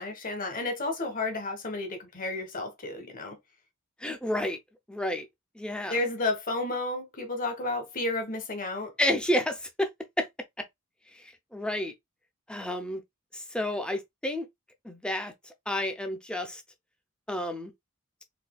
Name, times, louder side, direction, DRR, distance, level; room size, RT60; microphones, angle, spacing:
voice 1, 0.0-3.4 5.9-8.9, left 2 dB, 40° left, 1.1 m, -32 dB
voice 2, 4.0-4.6 4.9-5.3 5.6-5.9 9.0-9.9 10.2-10.3 11.1-11.9 12.5-13.0 13.3-14.5 14.8-16.6 17.3-17.7, left 1 dB, 5° left, 0.5 m, -30 dB
4.1 x 2.7 x 2.3 m
head